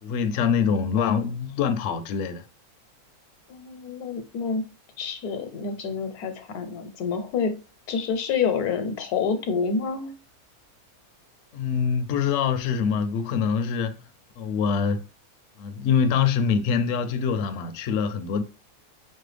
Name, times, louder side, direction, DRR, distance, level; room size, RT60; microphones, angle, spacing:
voice 1, 0.0-2.4 11.5-14.0 14.4-15.0 15.6-18.4, left 6 dB, 65° left, 0.8 m, -24 dB
voice 2, 3.5-4.6 5.0-7.6 7.9-10.1, left 5 dB, 85° left, 1.2 m, -28 dB
5.3 x 2.1 x 3.3 m
omnidirectional pair, 1.6 m